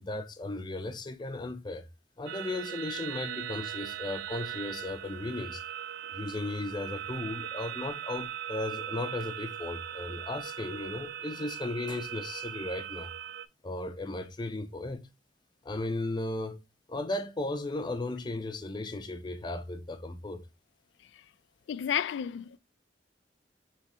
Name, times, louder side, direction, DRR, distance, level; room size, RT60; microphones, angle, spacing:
voice 1, 0.0-1.9 2.2-5.6 6.1-13.1 13.6-15.1 15.6-16.6 16.9-20.5, left 2 dB, 25° left, 0.5 m, -36 dB
sound 1, 2.3-13.5, right 10 dB, 65° right, 0.3 m, -39 dB
voice 2, 21.7-22.6, left 9 dB, 90° left, 0.3 m, -31 dB
5.2 x 3.1 x 3.0 m
head